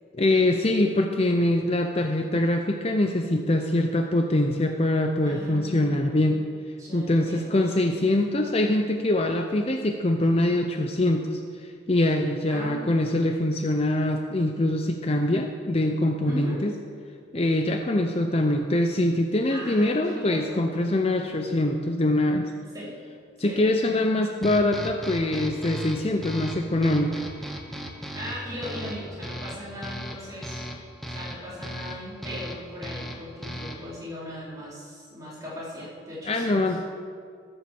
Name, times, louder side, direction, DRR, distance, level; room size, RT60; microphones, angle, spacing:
voice 1, 0.1-6.4 6.9-16.7 17.3-22.5 23.4-27.1 36.3-36.8, left 1 dB, 30° left, 4 dB, 0.6 m, -24 dB
voice 2, 5.2-6.5 6.8-8.1 12.4-12.9 16.2-16.6 19.5-20.6 22.7-23.0 23.4-23.6 28.1-30.6 31.0-36.5, equal, 20° right, -8 dB, 4.2 m, -38 dB
sound 1, 24.4-34.0, equal, ahead, 1.1 m, -37 dB
14.5 x 7.8 x 6.9 m, 2.3 s
head